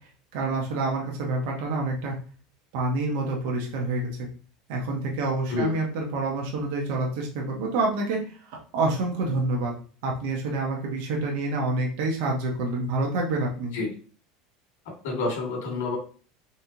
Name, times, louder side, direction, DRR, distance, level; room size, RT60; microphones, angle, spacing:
voice 1, 0.3-2.2 2.7-4.3 4.7-9.7 10.0-13.7, right 2 dB, 70° right, -1 dB, 1.1 m, -27 dB
voice 2, 15.0-16.0, left 3 dB, 80° left, -1 dB, 2.0 m, -28 dB
4.3 x 3.2 x 2.8 m, 0.39 s
supercardioid pair, 145°, 0 cm